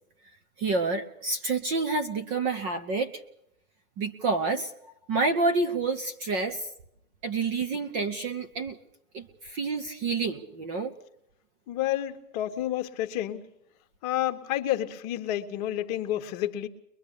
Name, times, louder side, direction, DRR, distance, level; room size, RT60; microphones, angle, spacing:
voice 1, 0.6-3.2 4.0-4.7 5.1-6.7 7.2-8.8 9.1-10.9, right 3 dB, 15° right, 7 dB, 0.8 m, -28 dB
voice 2, 11.7-13.5 14.0-16.7, left 13 dB, 25° left, 7 dB, 1.6 m, -30 dB
22.5 x 22.5 x 6.8 m, 0.75 s
hypercardioid pair, 155°, 43 cm